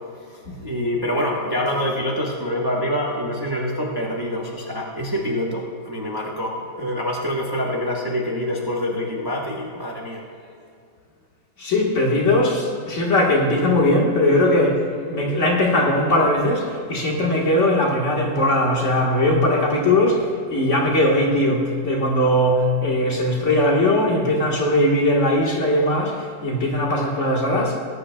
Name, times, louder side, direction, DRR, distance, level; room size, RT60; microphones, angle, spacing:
voice 1, 0.6-10.2, equal, 20° right, -2 dB, 0.7 m, -26 dB
voice 2, 11.6-27.8, left 1 dB, 45° left, -2 dB, 1.6 m, -19 dB
18.5 x 9.5 x 2.2 m, 2.4 s
omnidirectional pair, 2.0 m